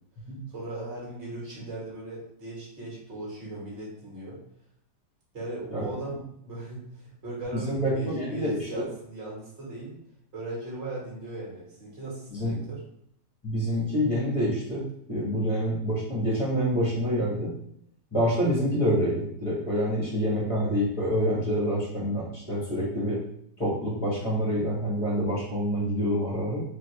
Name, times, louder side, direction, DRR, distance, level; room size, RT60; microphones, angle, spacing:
voice 1, 0.5-4.4 5.3-6.2 6.4-9.9 10.3-12.8, right 2 dB, 40° right, -6 dB, 1.9 m, -38 dB
voice 2, 7.6-8.8 12.3-12.5 13.4-14.8 15.1-17.5 18.1-23.2 23.6-26.6, equal, 20° left, -5 dB, 1.5 m, -27 dB
4.4 x 3.1 x 3.2 m, 0.69 s
omnidirectional pair, 1.9 m